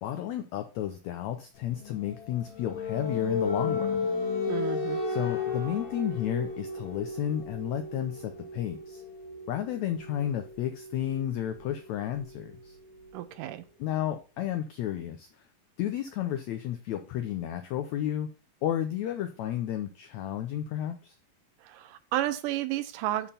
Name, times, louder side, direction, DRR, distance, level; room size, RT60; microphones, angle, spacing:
voice 1, 0.0-4.0 5.1-9.0 9.5-12.8 13.8-15.3 15.8-18.3 18.6-21.2, left 11 dB, 90° left, 8 dB, 1.5 m, -32 dB
sound 1, 1.7-13.3, left 4 dB, 60° left, 3.9 m, -35 dB
voice 2, 4.5-5.0 13.1-13.6 21.6-23.3, right 14 dB, 80° right, 12 dB, 2.0 m, -32 dB
7.2 x 4.4 x 5.5 m, 0.34 s
omnidirectional pair, 4.0 m